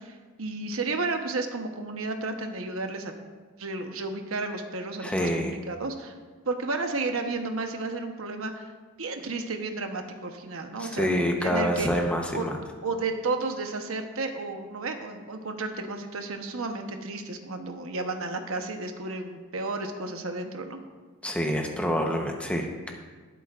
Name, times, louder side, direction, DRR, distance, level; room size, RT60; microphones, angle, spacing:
voice 1, 0.0-3.1 3.6-6.1 6.4-8.7 9.0-11.1 11.4-11.9 12.3-12.5 12.8-20.8, right 3 dB, 65° right, 5 dB, 1.0 m, -32 dB
voice 2, 5.0-5.5 10.8-12.6 21.2-22.9, equal, 5° left, 1 dB, 0.9 m, -27 dB
19.5 x 8.2 x 2.5 m, 1.4 s
head